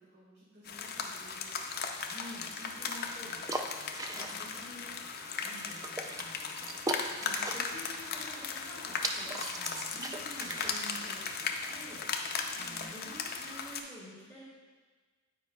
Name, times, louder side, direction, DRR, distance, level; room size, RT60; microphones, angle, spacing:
voice 1, 0.0-1.7 4.4-4.8 12.5-12.9, equal, 50° right, -10 dB, 1.7 m, -56 dB
sound 1, 0.6-13.8, left 5 dB, 45° left, 0.5 m, -37 dB
voice 2, 2.0-4.8 5.4-6.9 7.2-9.3 9.6-14.4, equal, 15° left, -10 dB, 1.7 m, -50 dB
sound 2, 2.4-12.9, right 2 dB, 15° right, 0.3 m, -42 dB
9.5 x 4.9 x 2.3 m, 1.4 s
head